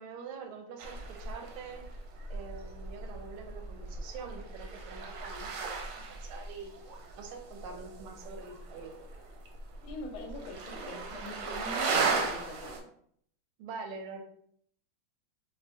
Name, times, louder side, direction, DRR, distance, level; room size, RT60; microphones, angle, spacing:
voice 1, 0.0-1.8 2.3-6.8 7.2-9.0 13.6-14.2, right 5 dB, 90° right, 4 dB, 1.4 m, -45 dB
sound 1, 0.8-12.8, right 4 dB, 70° right, 1.1 m, -37 dB
voice 2, 9.8-12.9, left 2 dB, 80° left, 3 dB, 1.3 m, -43 dB
3.6 x 2.6 x 2.5 m, 0.65 s
omnidirectional pair, 2.3 m